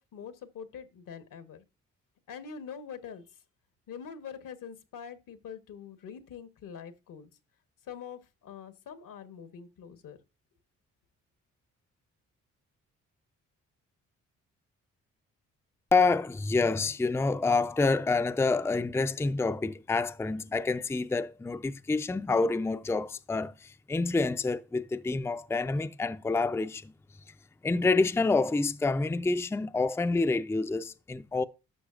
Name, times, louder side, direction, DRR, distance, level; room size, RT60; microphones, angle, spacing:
voice 1, 0.0-1.6 2.3-3.2 3.9-7.3 7.9-10.2, left 7 dB, 70° left, 1.1 m, -44 dB
voice 2, 15.9-26.9 27.6-31.4, left 3 dB, 10° left, 0.5 m, -27 dB
12.0 x 6.3 x 2.5 m
supercardioid pair, 50°, 33 cm